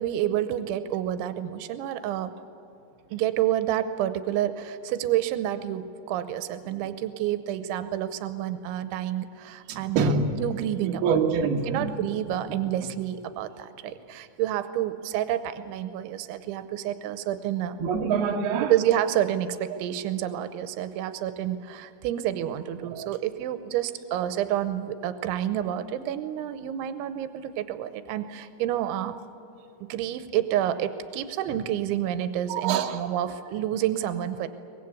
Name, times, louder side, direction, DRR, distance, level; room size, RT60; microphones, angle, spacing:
voice 1, 0.0-2.3 3.1-11.2 11.7-17.8 18.7-29.2 29.8-34.5, right 11 dB, 90° right, 11 dB, 3.2 m, -29 dB
voice 2, 9.7-10.3 10.8-11.9 17.8-18.7 19.7-19.8 22.9-23.1 32.5-33.0, right 5 dB, 65° right, 2 dB, 3.2 m, -26 dB
23.5 x 20.0 x 8.4 m, 2.9 s
omnidirectional pair, 5.2 m